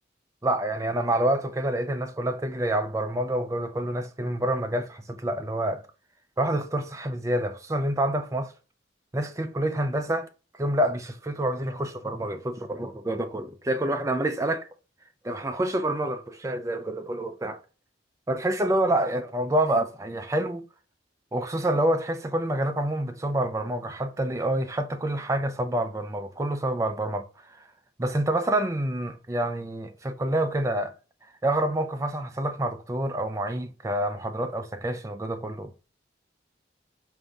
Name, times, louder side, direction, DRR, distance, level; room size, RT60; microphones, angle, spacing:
voice 1, 0.4-5.8 6.4-8.5 9.1-10.3 10.6-14.7 15.2-17.6 18.3-20.6 21.3-27.7 28.0-30.9 31.4-35.7, right 1 dB, 15° right, 0.4 m, -27 dB
5.1 x 2.6 x 3.4 m
head